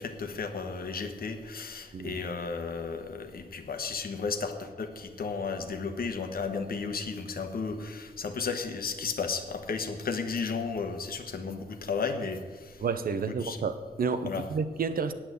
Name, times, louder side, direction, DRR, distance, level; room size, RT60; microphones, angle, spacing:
voice 1, 0.0-12.8 13.4-13.6 14.3-14.4, left 5 dB, 70° left, 7 dB, 1.3 m, -34 dB
voice 2, 12.8-15.1, right 5 dB, 70° right, 11 dB, 0.8 m, -30 dB
8.8 x 8.7 x 7.9 m, 1.4 s
wide cardioid pair, 115°, 16 cm